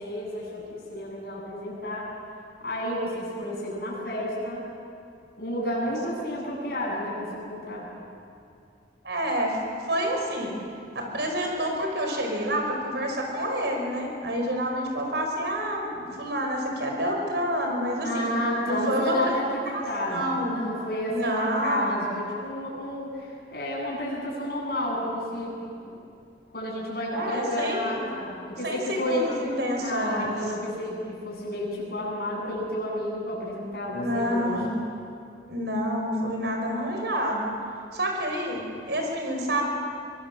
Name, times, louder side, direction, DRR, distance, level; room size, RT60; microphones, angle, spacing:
voice 1, 0.0-2.1 2.6-4.7 5.4-7.9 18.0-25.6 25.8-26.0 26.5-29.3 29.8-34.6, left 1 dB, 55° left, -4 dB, 8.0 m, -31 dB
voice 2, 9.0-9.6 9.8-10.5 11.0-18.3 18.7-19.3 19.7-19.8 20.1-20.6 21.1-22.0 27.1-28.0 28.6-30.4 33.9-34.7 35.5-37.5 37.9-39.6, equal, 75° right, 1 dB, 5.2 m, -28 dB
24.0 x 20.0 x 7.6 m, 2.5 s
head